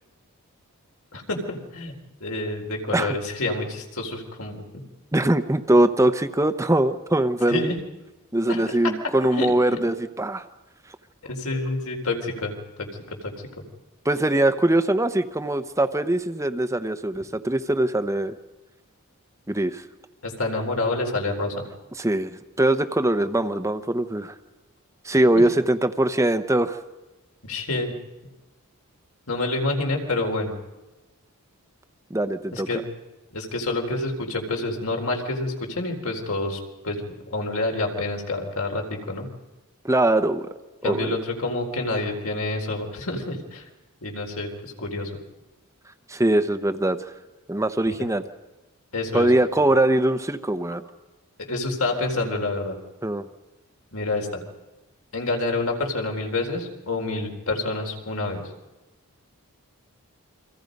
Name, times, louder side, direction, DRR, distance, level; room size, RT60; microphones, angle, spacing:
voice 1, 1.1-1.9 2.2-4.6 7.5-7.8 8.5-8.9 9.2-9.5 11.3-13.3 20.2-21.5 25.3-25.4 27.4-27.9 29.3-30.5 32.5-32.8 33.3-37.0 37.3-39.3 40.8-43.6 44.0-45.1 47.9-48.1 48.9-49.3 51.4-52.8 53.9-54.4 55.1-58.4, left 2 dB, 75° left, 2 dB, 4.1 m, -28 dB
voice 2, 5.1-7.7 8.3-10.4 14.0-18.4 19.5-19.8 22.0-24.3 25.0-26.8 32.1-32.8 39.8-40.5 40.8-41.1 46.1-47.1 47.5-48.2 49.1-50.8 53.0-53.3, right 1 dB, 15° right, 9 dB, 0.8 m, -22 dB
29.5 x 24.5 x 5.3 m, 1.1 s
head